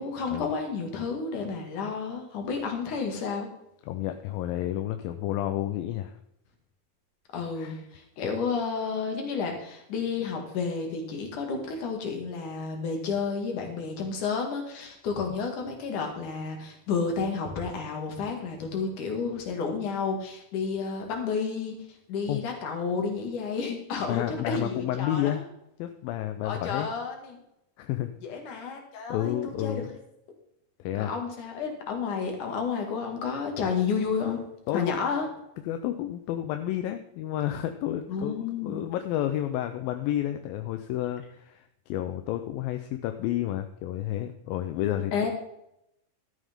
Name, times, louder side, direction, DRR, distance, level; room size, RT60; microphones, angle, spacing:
voice 1, 0.0-3.5 7.3-21.8 22.1-25.4 26.4-27.4 28.2-29.8 30.9-34.4 34.7-35.3 38.1-38.8 45.1-45.3, left 5 dB, 60° left, 3 dB, 3.4 m, -31 dB
voice 2, 3.8-6.2 7.6-7.8 22.3-22.4 24.1-25.5 25.8-26.9 27.8-28.1 29.1-29.8 30.8-31.1 34.7-35.0 35.7-45.1, left 12 dB, 80° left, 8 dB, 2.3 m, -30 dB
12.5 x 9.3 x 3.7 m, 0.79 s
omnidirectional pair, 4.4 m